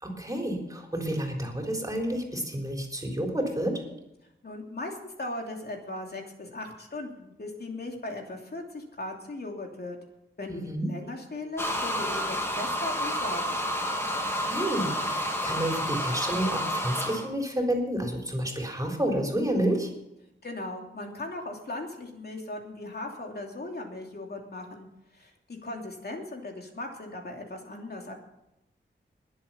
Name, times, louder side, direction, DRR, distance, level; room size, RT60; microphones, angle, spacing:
voice 1, 0.0-3.8 10.5-10.9 14.4-19.9, right 1 dB, 15° right, 1 dB, 3.9 m, -30 dB
voice 2, 4.4-10.0 10.4-13.6 20.4-24.9 25.1-28.1, left 2 dB, 50° left, 1 dB, 3.0 m, -38 dB
sound 1, 11.6-17.3, equal, 10° left, 2.4 m, -30 dB
21.0 x 7.8 x 5.7 m, 0.90 s
wide cardioid pair, 105°, 20 cm